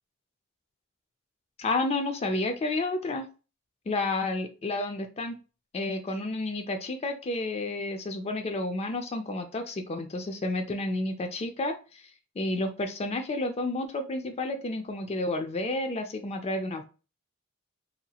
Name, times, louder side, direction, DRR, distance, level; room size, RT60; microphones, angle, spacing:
voice 1, 1.6-3.3 3.9-5.4 5.7-12.0 12.4-16.8, left 2 dB, 30° left, 7 dB, 0.3 m, -31 dB
2.8 x 2.8 x 2.3 m, 0.33 s
head